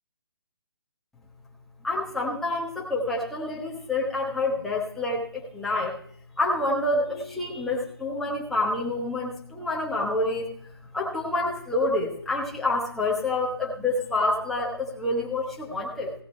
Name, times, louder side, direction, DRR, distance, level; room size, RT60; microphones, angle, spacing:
voice 1, 1.8-5.9 6.4-10.5 10.9-16.1, left 2 dB, ahead, -4 dB, 1.3 m, -27 dB
17.0 x 6.5 x 4.4 m, 0.63 s
hypercardioid pair, 165°, 14 cm